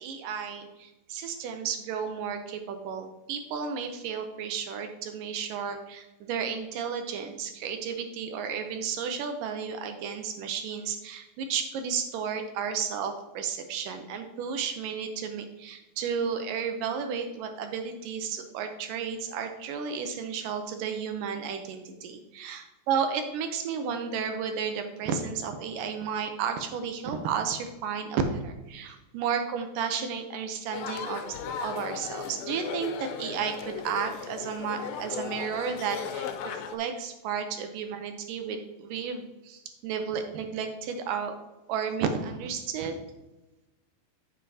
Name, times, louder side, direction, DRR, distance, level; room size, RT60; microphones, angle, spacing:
voice 1, 0.0-41.4 41.7-43.0, right 6 dB, 75° right, 6 dB, 2.2 m, -33 dB
sound 1, 30.7-36.8, left 7 dB, 90° left, 2.4 m, -37 dB
8.2 x 7.5 x 2.7 m, 1.0 s
omnidirectional pair, 4.1 m